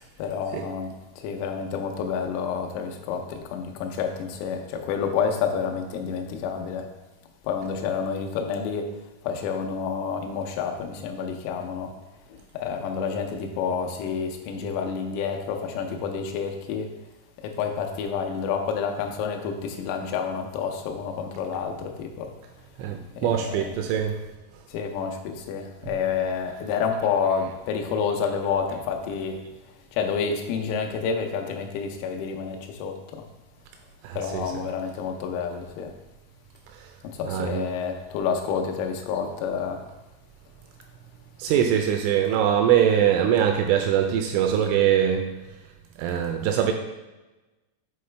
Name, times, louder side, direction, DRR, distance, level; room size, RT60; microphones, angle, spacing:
voice 1, 0.2-6.9 7.4-8.9 9.2-11.9 12.3-16.9 17.4-22.3 23.2-23.9 24.7-29.4 29.9-33.2 34.1-35.9 37.0-39.8, left 6 dB, 90° left, 4 dB, 3.4 m, -29 dB
voice 2, 22.8-24.2 25.9-26.0 34.0-34.6 36.7-36.9 37.3-37.7 41.4-45.3 46.0-46.7, right 9 dB, 85° right, 4 dB, 2.8 m, -23 dB
8.5 x 3.9 x 3.3 m, 1.1 s
omnidirectional pair, 5.9 m